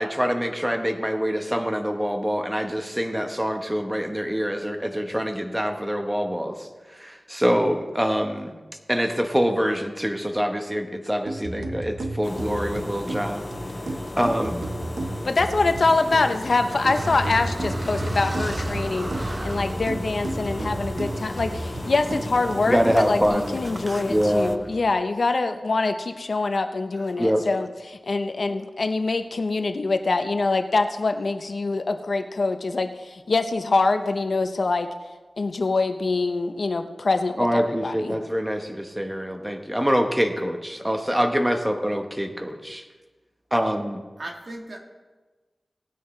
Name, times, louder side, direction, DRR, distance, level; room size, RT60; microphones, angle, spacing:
voice 1, 0.0-6.6 7.0-8.5 8.9-13.4 14.2-14.6 22.7-23.6 24.1-24.7 27.2-27.4 37.4-42.8 43.5-44.0, equal, 10° right, 4 dB, 1.1 m, -25 dB
sound 1, 11.3-23.3, right 2 dB, 85° right, 1.0 m, -34 dB
sound 2, 12.2-24.6, left 2 dB, 30° left, 0.5 m, -35 dB
voice 2, 15.2-34.9 35.4-38.2, left 3 dB, 70° left, 7 dB, 0.8 m, -24 dB
Car, 16.6-24.9, right 1 dB, 35° right, 0.9 m, -34 dB
voice 3, 26.9-27.3 44.2-44.8, right 1 dB, 65° right, 1 dB, 1.7 m, -39 dB
18.5 x 9.4 x 3.2 m, 1.3 s
wide cardioid pair, 80°, 0 cm